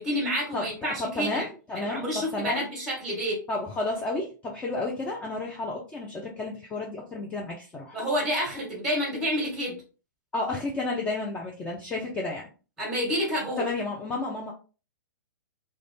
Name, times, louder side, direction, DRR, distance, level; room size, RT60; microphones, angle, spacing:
voice 1, 0.0-1.5 1.7-3.4 7.9-9.8 12.8-13.6, equal, 5° right, -4 dB, 1.4 m, -29 dB
voice 2, 1.0-2.6 3.5-8.0 10.3-12.5 13.6-14.5, left 2 dB, 10° left, -2 dB, 0.4 m, -31 dB
2.5 x 2.1 x 3.2 m, 0.35 s
figure-of-eight pair, 110°, 11 cm